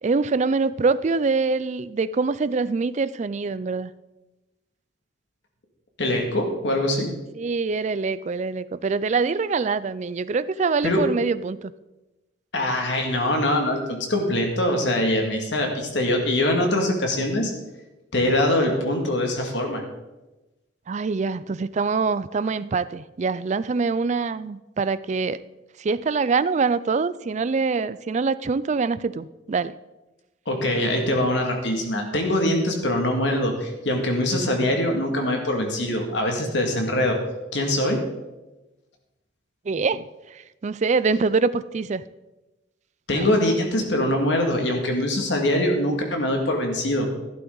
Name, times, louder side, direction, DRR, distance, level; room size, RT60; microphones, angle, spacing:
voice 1, 0.0-3.9 7.4-11.7 20.9-25.4 25.8-29.7 39.7-42.0 43.1-43.3, right 4 dB, 40° right, 16 dB, 0.4 m, -24 dB
voice 2, 6.0-7.1 10.8-11.1 12.5-17.5 18.1-19.8 30.5-37.2 37.5-38.0 43.1-47.1, left 1 dB, 70° left, 2 dB, 2.2 m, -23 dB
12.5 x 11.5 x 3.9 m, 1.1 s
head